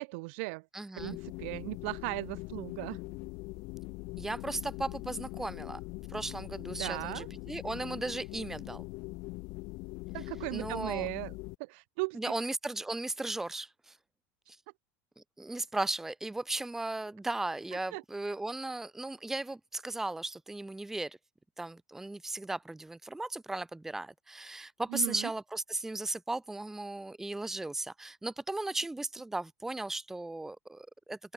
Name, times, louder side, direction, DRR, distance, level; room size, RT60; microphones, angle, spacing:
voice 1, 0.0-0.7 1.0-3.0 6.8-7.3 10.1-12.2 17.9-18.0 24.9-25.3, right 28 dB, 70° right, 0.4 m, -37 dB
voice 2, 0.7-1.2 4.2-5.8 6.1-8.8 10.5-11.1 12.1-13.9 15.4-21.2 21.6-31.2, right 2 dB, 5° right, 0.8 m, -36 dB
sound 1, 1.0-11.5, left 25 dB, 55° left, 1.3 m, -42 dB
open air
supercardioid pair, 150°, 7 cm